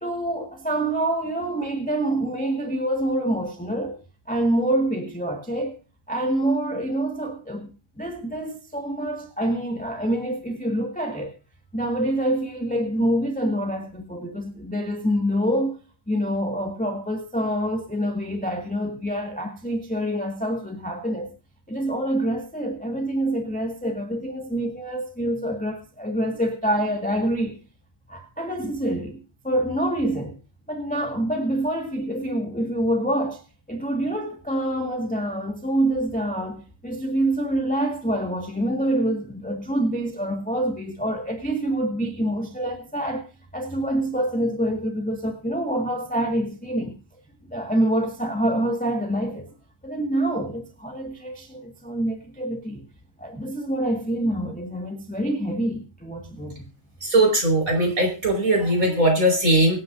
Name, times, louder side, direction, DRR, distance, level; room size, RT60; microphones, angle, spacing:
voice 1, 0.0-4.0 4.3-5.8 6.1-7.7 8.0-11.3 11.7-15.7 16.1-21.3 21.7-27.6 28.1-30.4 30.7-33.4 33.7-43.2 43.5-46.9 47.5-49.5 49.8-52.9 53.2-56.5, right 1 dB, 5° left, 1.5 m, -26 dB
voice 2, 57.0-59.8, right 1 dB, 40° right, 5.4 m, -20 dB
24.0 x 9.5 x 2.6 m
omnidirectional pair, 2.2 m